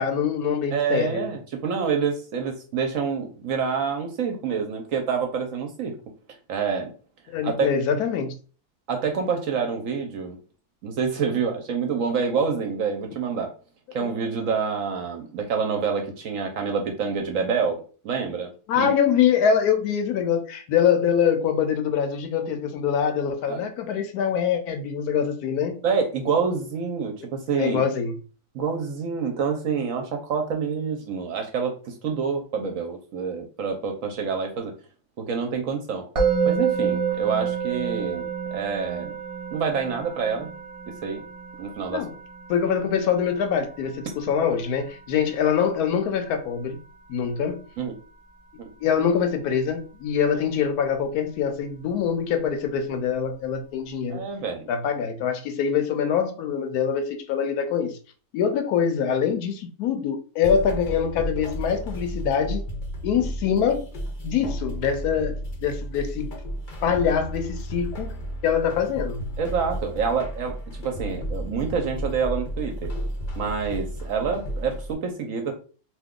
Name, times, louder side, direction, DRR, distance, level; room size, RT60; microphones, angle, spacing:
voice 1, 0.0-1.3 7.3-8.4 18.7-25.7 27.6-28.1 41.9-42.1 42.5-46.8 47.1-47.6 48.8-54.2 54.7-58.0 58.3-62.6 63.0-63.8 64.2-65.3 65.6-66.3 66.8-68.2 68.4-69.2, left 7 dB, 75° left, 7 dB, 1.0 m, -24 dB
voice 2, 0.7-6.0 6.5-6.9 7.4-7.7 8.9-10.4 10.8-13.5 13.9-18.5 18.8-18.9 23.5-23.6 25.8-27.8 28.5-34.7 35.2-36.1 36.4-39.1 39.5-40.5 41.0-41.2 41.6-42.0 47.8-47.9 48.6-48.7 54.1-54.7 69.4-70.6 70.8-72.9 73.4-75.5, right 6 dB, 65° right, 4 dB, 0.9 m, -27 dB
Musical instrument, 36.2-47.3, right 6 dB, 25° right, 0.8 m, -30 dB
sound 1, 60.4-74.9, equal, 50° left, 0.6 m, -33 dB
2.8 x 2.3 x 3.6 m, 0.38 s
omnidirectional pair, 1.7 m